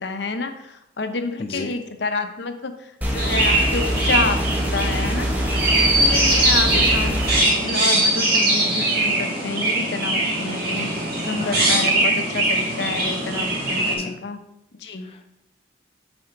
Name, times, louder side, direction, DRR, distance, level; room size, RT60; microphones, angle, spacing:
voice 1, 0.0-5.3 6.0-7.2 7.6-14.4 14.8-15.1, left 3 dB, 65° left, 7 dB, 0.7 m, -29 dB
voice 2, 1.4-1.7 6.7-6.9 11.4-11.8 14.0-14.2 15.0-15.3, left 2 dB, 30° left, 4 dB, 0.4 m, -33 dB
sound 1, 3.0-7.4, equal, 10° right, 0.9 m, -24 dB
Chirp tweet, 3.2-13.9, right 1 dB, 50° right, 2.2 m, -21 dB
8.9 x 4.3 x 3.8 m, 0.83 s
head